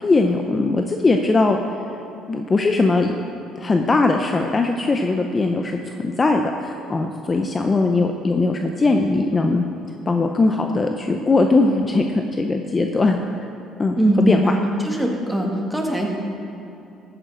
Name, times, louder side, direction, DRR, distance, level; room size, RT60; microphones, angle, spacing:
voice 1, 0.0-1.6 2.3-3.1 3.6-9.6 10.1-13.5 13.8-14.0 14.3-14.4, left 3 dB, 25° left, 4 dB, 0.6 m, -20 dB
voice 2, 14.0-14.6 14.8-16.1, equal, 5° right, 0 dB, 1.7 m, -20 dB
14.5 x 9.0 x 3.9 m, 2.8 s
cardioid pair, 110°, 0 cm